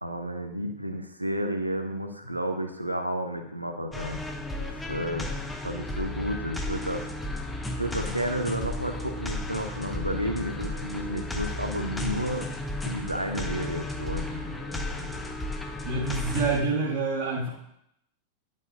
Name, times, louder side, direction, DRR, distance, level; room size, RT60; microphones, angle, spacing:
voice 1, 0.0-4.2 4.6-7.1 7.7-12.5 12.8-14.5, equal, 85° right, 5 dB, 0.8 m, -32 dB
sound 1, 3.9-16.6, left 1 dB, 10° left, 0.7 m, -33 dB
voice 2, 15.8-17.5, right 4 dB, 50° right, -6 dB, 1.6 m, -27 dB
10.5 x 5.3 x 2.6 m, 0.79 s
figure-of-eight pair, 90°, 0 cm